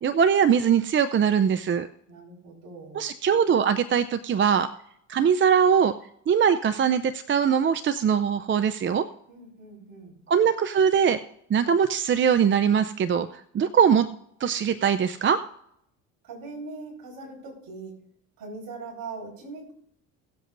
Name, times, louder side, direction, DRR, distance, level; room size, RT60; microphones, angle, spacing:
voice 1, 0.0-1.9 2.9-4.7 5.1-5.9 6.3-9.1 10.3-11.2 11.5-13.3 13.5-14.1 14.4-15.4, right 7 dB, 30° right, 11 dB, 0.5 m, -21 dB
voice 2, 2.1-3.0 9.3-10.2 16.2-17.9 18.4-19.7, right 3 dB, 60° right, -1 dB, 4.7 m, -41 dB
18.0 x 7.6 x 2.6 m, 0.71 s
hypercardioid pair, 65°, 39 cm